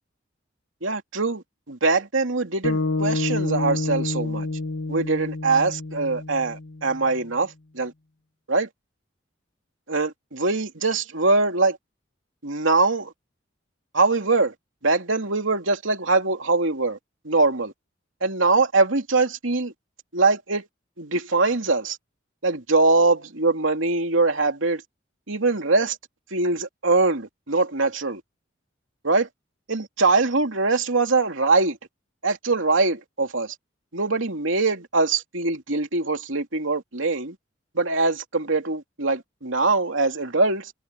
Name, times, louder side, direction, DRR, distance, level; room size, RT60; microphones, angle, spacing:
voice 1, 0.8-4.5 4.9-7.9 8.5-8.7 9.9-11.8 12.4-13.1 13.9-14.5 14.8-17.0 17.2-17.7 18.2-19.7 20.1-20.7 21.0-22.0 22.4-24.8 25.3-26.0 26.3-28.2 29.0-29.3 29.7-31.8 32.2-33.5 33.9-37.3 37.7-40.7, right 3 dB, 85° right, 2.8 m, -22 dB
sound 1, 2.6-7.0, left 3 dB, 65° left, 1.6 m, -28 dB
head